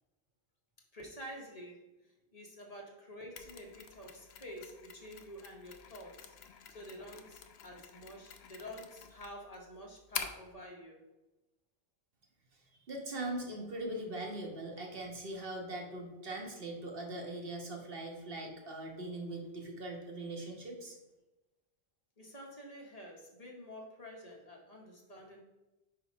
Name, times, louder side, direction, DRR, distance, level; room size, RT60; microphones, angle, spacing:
voice 1, 0.9-6.3 6.7-11.0 22.2-25.4, equal, 40° left, 0 dB, 1.1 m, -49 dB
Mechanisms, 3.4-10.5, left 7 dB, 80° left, 0.9 m, -47 dB
voice 2, 12.5-21.0, right 1 dB, 65° right, 0 dB, 1.4 m, -41 dB
5.0 x 4.9 x 5.1 m, 1.0 s
omnidirectional pair, 1.0 m